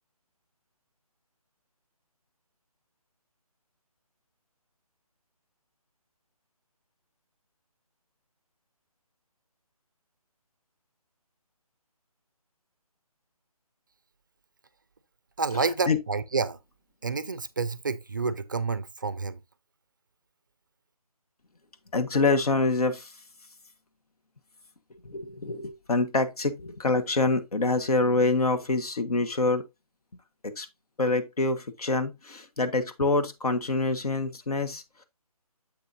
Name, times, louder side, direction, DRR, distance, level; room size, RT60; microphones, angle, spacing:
voice 1, 15.4-16.6 17.0-19.4, right 4 dB, 30° right, 0.4 m, -29 dB
voice 2, 21.9-23.1 25.0-29.7 30.4-30.7 31.0-35.0, left 3 dB, 70° left, 1.4 m, -26 dB
7.6 x 6.7 x 2.6 m
figure-of-eight pair, 165°, 20 cm